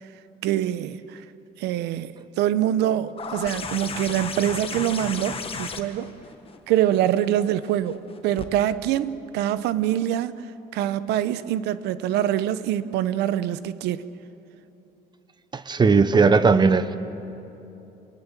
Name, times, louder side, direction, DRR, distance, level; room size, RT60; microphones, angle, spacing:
voice 1, 0.4-1.2 1.6-6.1 6.7-10.5 10.7-14.1, right 11 dB, 85° right, 0.8 m, -25 dB
sound 1, 3.2-8.5 9.8-9.9, left 5 dB, 35° left, 1.5 m, -35 dB
voice 2, 15.5-17.0, right 4 dB, 25° right, 0.9 m, -18 dB
27.5 x 19.5 x 7.4 m
cardioid pair, 110°, 17 cm